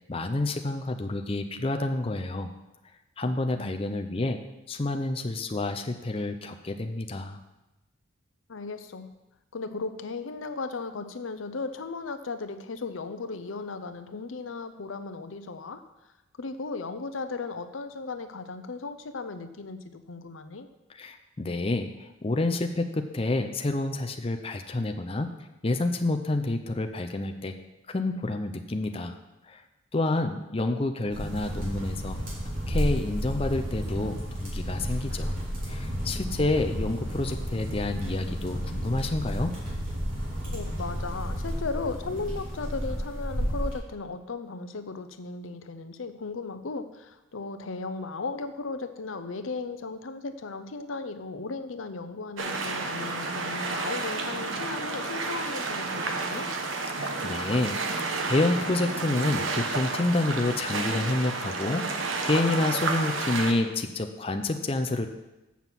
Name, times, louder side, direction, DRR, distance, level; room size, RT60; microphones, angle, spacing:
voice 1, 0.1-2.5 3.2-4.4 4.7-7.4 20.9-25.3 25.6-27.5 27.9-29.2 29.5-29.6 29.9-32.2 32.7-35.3 35.7-39.5 56.9-57.8 58.3-61.8 62.2-65.1, left 2 dB, 30° left, 6 dB, 0.6 m, -28 dB
voice 2, 8.5-9.1 9.5-15.8 16.4-20.7 40.5-56.5, left 3 dB, 85° left, 10 dB, 0.7 m, -36 dB
sound 1, 31.1-43.8, equal, 45° right, 3.4 m, -32 dB
sound 2, 52.4-63.5, right 3 dB, 85° right, 1.1 m, -31 dB
7.2 x 6.1 x 7.4 m, 1.0 s
head